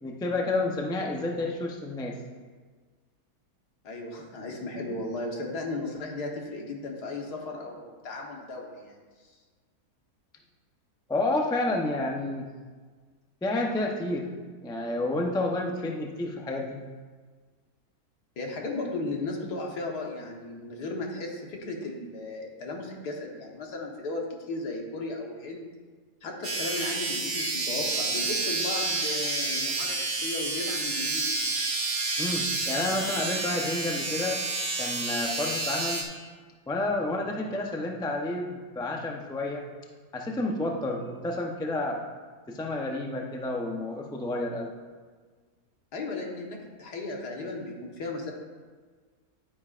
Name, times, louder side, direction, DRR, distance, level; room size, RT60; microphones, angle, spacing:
voice 1, 0.0-2.2 11.1-12.5 13.4-14.3 14.6-16.8 32.2-34.4 34.8-36.1 36.7-39.7 40.1-42.0 42.5-44.7, left 2 dB, 5° left, 1 dB, 0.4 m, -30 dB
voice 2, 3.8-9.0 9.2-9.4 18.4-25.7 26.2-31.3 45.9-48.3, left 2 dB, 85° left, 0 dB, 1.9 m, -35 dB
sound 1, 26.4-36.0, right 3 dB, 35° right, 1.3 m, -29 dB
11.0 x 9.2 x 2.5 m, 1.5 s
omnidirectional pair, 1.7 m